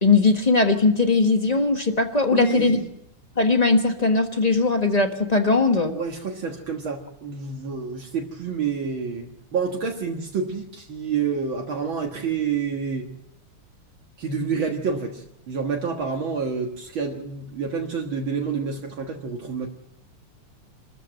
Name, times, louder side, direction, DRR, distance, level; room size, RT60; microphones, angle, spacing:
voice 1, 0.0-2.8 3.4-5.9, left 3 dB, 25° left, 6 dB, 1.1 m, -19 dB
voice 2, 2.3-2.9 5.8-13.1 14.2-19.7, right 5 dB, 65° right, 1 dB, 2.4 m, -28 dB
26.0 x 13.5 x 7.6 m, 0.80 s
omnidirectional pair, 2.4 m